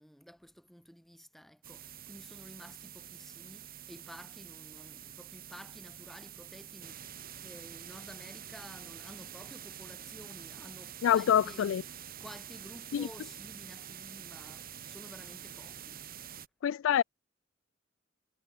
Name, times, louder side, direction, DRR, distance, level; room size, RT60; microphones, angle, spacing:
voice 1, 0.0-11.7 12.2-16.0, equal, ahead, 3.4 m, -52 dB
sound 1, 1.6-16.5, right 9 dB, 45° right, 1.9 m, -47 dB
voice 2, 11.0-11.8 12.9-13.1 16.6-17.0, left 9 dB, 70° left, 0.3 m, -26 dB
head